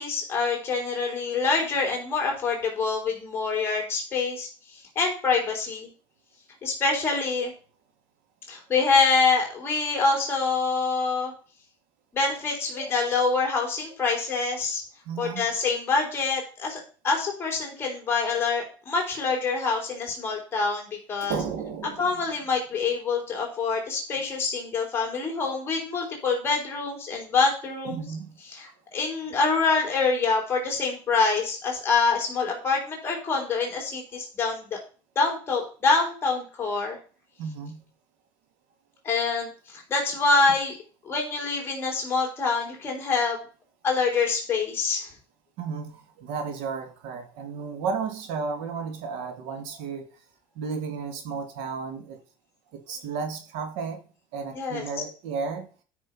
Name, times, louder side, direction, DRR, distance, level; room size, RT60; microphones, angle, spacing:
voice 1, 0.0-5.9 6.6-7.5 8.5-11.3 12.1-14.8 15.2-21.3 22.0-28.0 28.5-34.8 35.2-37.0 39.0-40.8 41.0-43.5 43.8-45.1 54.5-54.9, left 4 dB, 20° left, 0 dB, 4.1 m, -26 dB
voice 2, 15.1-15.5 21.2-22.2 27.9-28.4 37.4-37.8 45.6-50.1 50.6-52.2 52.7-54.0 54.3-55.7, right 5 dB, 85° right, 7 dB, 2.4 m, -33 dB
12.0 x 6.3 x 5.6 m, 0.38 s
cardioid pair, 165°, 11 cm